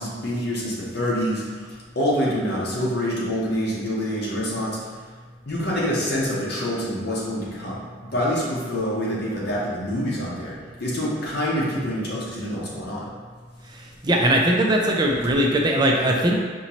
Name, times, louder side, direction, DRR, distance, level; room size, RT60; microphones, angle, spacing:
voice 1, 0.0-1.4 2.0-4.8 5.5-7.8 8.1-10.5 10.8-13.1, equal, 55° left, -6 dB, 0.9 m, -26 dB
voice 2, 13.7-16.3, right 1 dB, 20° right, 0 dB, 0.4 m, -20 dB
5.3 x 2.8 x 3.0 m, 1.5 s
head